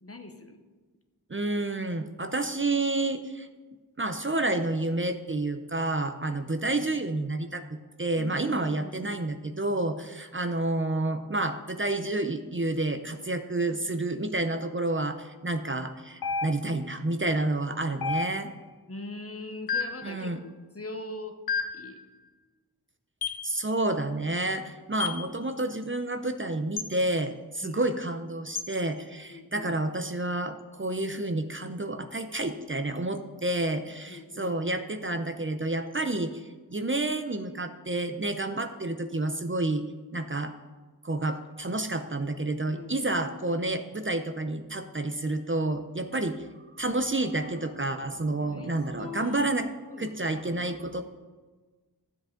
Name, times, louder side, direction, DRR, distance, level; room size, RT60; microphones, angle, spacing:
voice 1, 0.0-0.6 8.1-9.2 18.9-21.4 21.7-22.0 27.6-27.8 28.4-28.5 29.3-29.7 34.1-34.8 42.7-43.0 48.5-48.7 49.0-49.5 49.8-50.4, left 2 dB, 40° left, 6 dB, 1.0 m, -42 dB
voice 2, 1.3-3.5 4.0-18.5 20.0-20.4 23.4-39.8 40.1-40.5 41.0-46.5 46.8-49.7 50.0-51.0, right 2 dB, 35° right, 7 dB, 0.6 m, -29 dB
sound 1, 16.2-16.9 18.0-18.7 19.7-20.1 21.5-21.9 23.2-23.5 25.0-25.3 26.8-26.9 28.5-28.7, left 5 dB, 75° left, 0.6 m, -31 dB
13.0 x 7.6 x 3.7 m, 1.3 s
wide cardioid pair, 50°, 37 cm